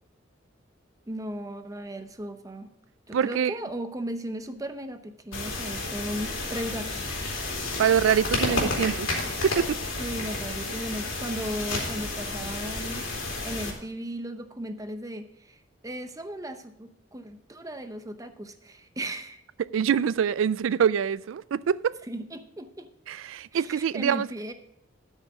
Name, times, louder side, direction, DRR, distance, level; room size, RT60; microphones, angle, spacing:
voice 1, 1.1-2.7 3.1-7.4 10.0-13.1 13.4-19.4 22.1-22.9 23.5-24.5, right 1 dB, 15° right, 0.7 m, -36 dB
voice 2, 3.1-3.5 7.8-9.1 9.4-9.8 19.6-22.0 23.1-24.3, right 8 dB, 75° right, 0.3 m, -25 dB
sound 1, 5.3-13.7, left 2 dB, 85° left, 3.3 m, -31 dB
12.0 x 6.5 x 4.9 m
head